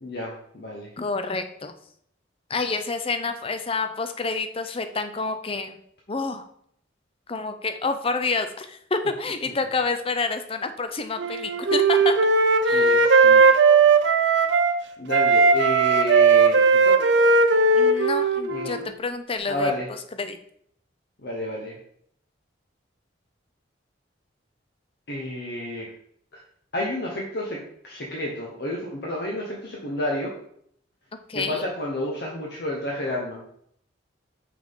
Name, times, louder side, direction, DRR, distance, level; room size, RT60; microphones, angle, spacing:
voice 1, 0.0-0.9 12.7-13.5 15.0-17.1 18.5-18.9 19.5-19.9 21.2-21.7 25.1-25.9 26.7-30.3 31.3-33.4, left 1 dB, 60° left, -2 dB, 1.1 m, -30 dB
voice 2, 1.0-1.7 2.5-5.8 6.1-6.4 7.3-12.1 12.6-13.0 17.8-20.4 31.3-31.6, left 3 dB, 30° left, 8 dB, 0.5 m, -28 dB
Wind instrument woodwind instrument, 11.2-14.8 15.1-18.9, right 4 dB, 65° right, 0.6 m, -18 dB
6.0 x 5.9 x 3.7 m, 0.68 s
head